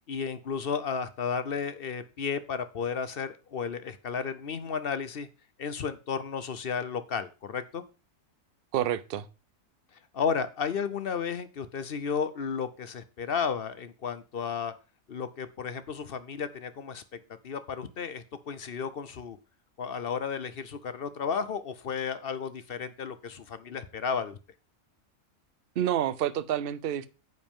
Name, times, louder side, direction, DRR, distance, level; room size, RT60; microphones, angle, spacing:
voice 1, 0.1-5.3 5.6-7.8 10.1-14.7 15.1-17.0 17.4-19.4 19.8-24.4, left 6 dB, 50° left, 0.8 m, -33 dB
voice 2, 8.7-9.3 25.8-27.1, right 11 dB, 55° right, 0.7 m, -28 dB
9.6 x 7.7 x 3.6 m
omnidirectional pair, 1.4 m